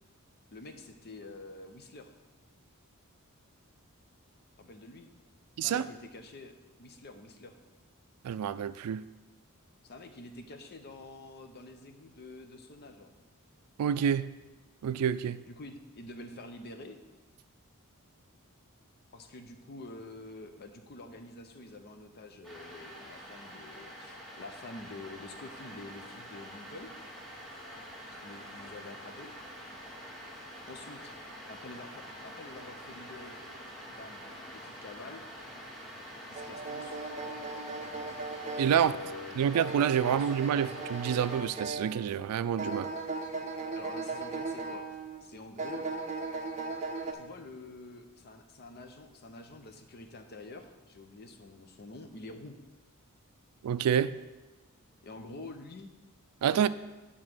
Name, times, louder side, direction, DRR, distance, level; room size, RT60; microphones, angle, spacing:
voice 1, 0.5-2.1 4.6-5.1 5.6-7.5 9.8-13.1 15.5-17.0 19.1-26.9 28.2-29.3 30.7-31.1 31.5-33.4 33.9-34.3 34.5-35.2 36.3-37.0 38.7-39.5 40.0-40.3 43.7-45.9 47.1-52.6 55.0-55.9, left 2 dB, 45° left, 7 dB, 0.7 m, -47 dB
voice 2, 8.2-9.0 13.8-14.3 14.8-15.4 38.6-38.9 39.4-42.9 53.6-54.1 56.4-56.7, right 8 dB, 85° right, 16 dB, 0.3 m, -28 dB
sound 1, 22.4-41.4, equal, ahead, 1.4 m, -46 dB
sound 2, 36.4-42.2 42.6-45.2 45.6-47.1, right 3 dB, 30° right, 0.6 m, -38 dB
8.6 x 3.7 x 6.1 m, 1.1 s
head